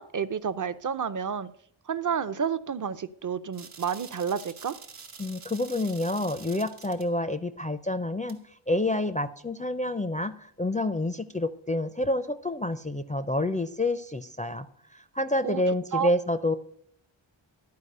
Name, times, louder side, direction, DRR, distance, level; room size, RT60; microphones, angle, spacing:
voice 1, 0.0-1.5 1.9-4.8 15.4-15.6 15.9-16.1, right 7 dB, 40° right, 15 dB, 0.5 m, -30 dB
sound 1, 3.5-7.1 8.3-8.4, right 5 dB, 85° right, 1.2 m, -47 dB
voice 2, 5.2-8.4 8.7-14.7 14.9-16.5, left 1 dB, 15° left, 9 dB, 0.4 m, -28 dB
11.5 x 4.7 x 6.5 m, 0.67 s
wide cardioid pair, 60°, 49 cm